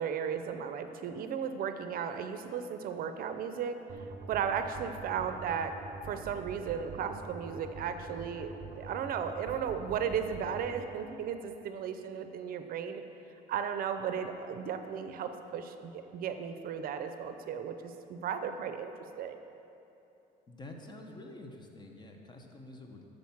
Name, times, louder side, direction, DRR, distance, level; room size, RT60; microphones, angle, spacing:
voice 1, 0.0-3.8 4.3-5.7 6.0-13.0 13.5-19.4, right 7 dB, 60° right, 8 dB, 0.5 m, -35 dB
sound 1, 3.9-10.7, right 5 dB, 35° right, 0.9 m, -45 dB
voice 2, 20.5-23.1, left 2 dB, 25° left, 2 dB, 0.9 m, -48 dB
6.5 x 6.0 x 7.2 m, 2.8 s
cardioid pair, 110°, 17 cm